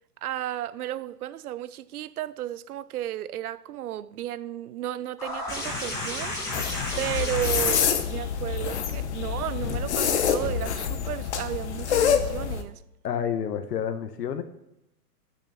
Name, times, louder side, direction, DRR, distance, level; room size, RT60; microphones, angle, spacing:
voice 1, 0.2-6.6 7.0-12.8, right 12 dB, 65° right, 0.5 m, -33 dB
sound 1, 5.2-10.5 11.8-11.9, left 2 dB, 5° left, 1.3 m, -34 dB
sound 2, 6.5-12.6, left 8 dB, 45° left, 0.8 m, -27 dB
voice 2, 13.0-14.4, left 8 dB, 80° left, 1.2 m, -29 dB
6.6 x 6.1 x 6.7 m
hypercardioid pair, 170°, 47 cm